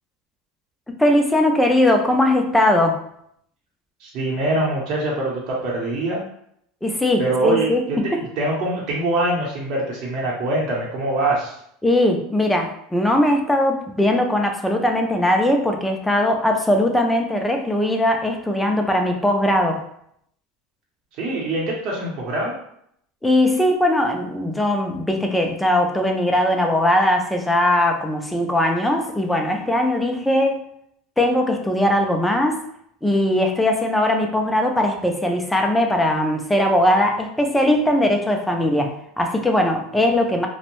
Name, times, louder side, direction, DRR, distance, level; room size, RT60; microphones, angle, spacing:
voice 1, 1.0-3.0 6.8-7.8 8.1-8.2 11.8-19.8 23.2-30.6 31.2-32.6 33.0-40.5, left 1 dB, 5° left, 2 dB, 0.4 m, -20 dB
voice 2, 4.0-6.2 7.2-11.6 21.1-22.5, right 2 dB, 50° right, -4 dB, 0.7 m, -24 dB
2.5 x 2.0 x 3.0 m, 0.71 s
supercardioid pair, 140°, 0 cm